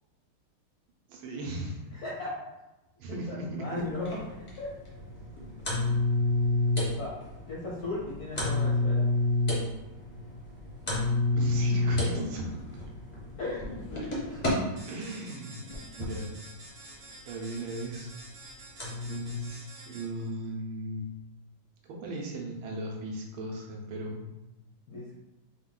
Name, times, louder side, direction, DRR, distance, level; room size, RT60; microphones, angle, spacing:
voice 1, 1.1-1.8 3.0-3.8 11.3-12.8 14.9-15.6 16.0-16.3 17.3-18.1 19.0-21.1 21.8-24.2, right 1 dB, 75° right, 0 dB, 1.5 m, -37 dB
voice 2, 1.9-2.5 3.1-4.7 7.0-7.1 7.5-9.1 13.4-14.4 24.9-25.2, left 2 dB, 70° left, -5 dB, 0.9 m, -37 dB
sound 1, 3.7-14.5 15.3-16.2 17.4-17.5 17.9-18.0 18.8-19.5, left 2 dB, 40° left, 0.5 m, -30 dB
sound 2, 14.8-20.3, right 2 dB, 45° right, 0.8 m, -49 dB
4.4 x 2.2 x 3.7 m, 1.0 s
omnidirectional pair, 2.3 m